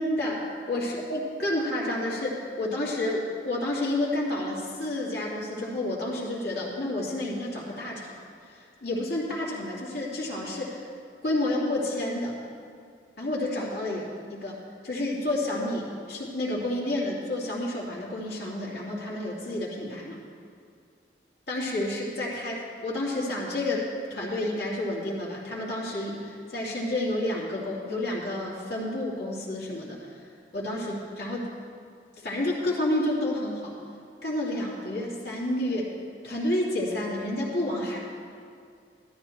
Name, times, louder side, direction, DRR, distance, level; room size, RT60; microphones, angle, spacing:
voice 1, 0.0-8.2 8.5-10.9 11.2-12.4 13.2-20.2 21.5-30.2 30.5-31.5 32.2-33.8 34.2-35.9 36.2-38.0, left 1 dB, 70° left, -5 dB, 2.7 m, -30 dB
13.0 x 12.5 x 3.3 m, 2.3 s
head